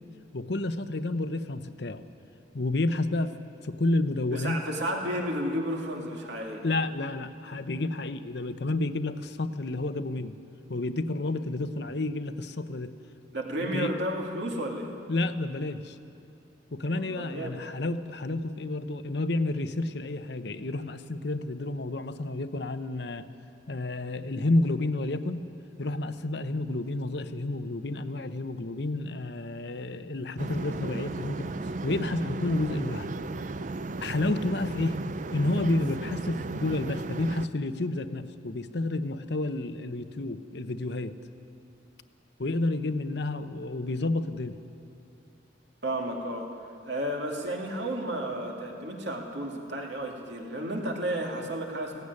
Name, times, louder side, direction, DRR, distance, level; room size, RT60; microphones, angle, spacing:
voice 1, 0.3-2.0 2.5-3.3 3.6-4.6 6.6-10.3 10.7-12.9 13.6-13.9 15.1-16.0 16.7-23.3 23.7-25.5 25.8-31.5 31.8-33.1 34.0-35.0 35.3-41.1 42.4-44.6, left 2 dB, 65° left, 10 dB, 0.8 m, -30 dB
voice 2, 4.3-6.6 13.3-14.9 16.9-17.6 45.8-46.5 46.9-52.0, right 1 dB, 65° right, 0 dB, 2.7 m, -32 dB
sound 1, 30.4-37.5, right 3 dB, 40° right, 0.5 m, -35 dB
16.5 x 16.0 x 9.8 m, 2.7 s
head